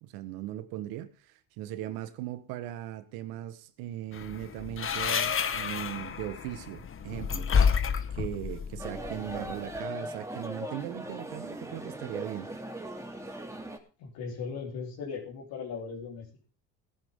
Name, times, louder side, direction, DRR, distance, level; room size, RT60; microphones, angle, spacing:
voice 1, 0.0-7.8 8.1-12.5, right 13 dB, 75° right, 1.5 m, -39 dB
sound 1, 4.1-9.8, left 6 dB, 35° left, 1.5 m, -30 dB
sound 2, 8.8-13.8, right 1 dB, 10° right, 2.8 m, -39 dB
voice 2, 14.0-16.5, left 5 dB, 70° left, 4.1 m, -38 dB
19.0 x 10.0 x 3.8 m
supercardioid pair, 85°, 36 cm